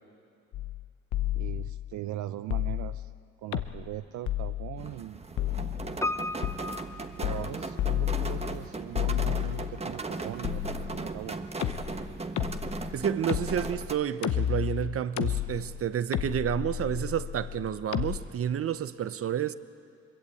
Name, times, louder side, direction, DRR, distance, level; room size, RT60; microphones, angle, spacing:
sound 1, 0.5-0.8 1.1-1.9 2.5-3.1 3.5-3.9 4.3-4.9 5.4-6.0 6.4-6.6 7.2-7.5 7.8-8.6 8.9-9.8 10.4-11.2 11.6-18.2, left 12 dB, 75° left, 0.9 m, -32 dB
voice 1, 1.3-3.1 3.4-5.3 7.2-11.4, right 13 dB, 75° right, 0.6 m, -40 dB
sound 2, 4.8-14.0, right 3 dB, 20° right, 1.3 m, -37 dB
Piano, 6.0-8.1 8.3-8.4, left 2 dB, 10° left, 0.7 m, -35 dB
voice 2, 12.9-19.5, right 9 dB, 50° right, 0.8 m, -30 dB
22.0 x 22.0 x 8.6 m
cardioid pair, 90°, 30 cm